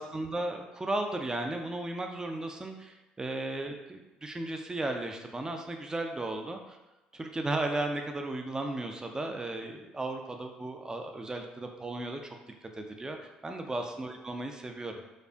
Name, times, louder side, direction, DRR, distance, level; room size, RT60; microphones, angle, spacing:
voice 1, 0.0-6.8 7.1-12.4 12.8-13.2 13.4-14.9, right 2 dB, 15° right, 4 dB, 0.4 m, -35 dB
4.2 x 2.4 x 2.4 m, 1.0 s
figure-of-eight pair, 50°, 4 cm